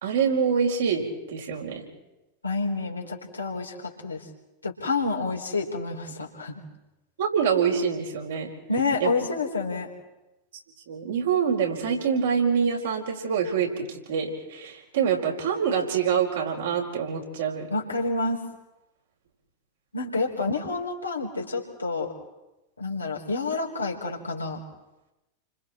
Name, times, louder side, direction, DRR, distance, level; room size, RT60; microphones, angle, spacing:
voice 1, 0.0-1.8 7.2-8.5 9.0-9.1 10.9-17.7, right 7 dB, 65° right, 0 dB, 4.7 m, -25 dB
voice 2, 2.4-4.2 4.6-6.6 8.7-9.9 17.7-18.4 19.9-22.1 22.8-24.6, left 3 dB, 85° left, 0 dB, 3.9 m, -28 dB
29.5 x 25.5 x 4.5 m, 0.98 s
figure-of-eight pair, 90°, 0 cm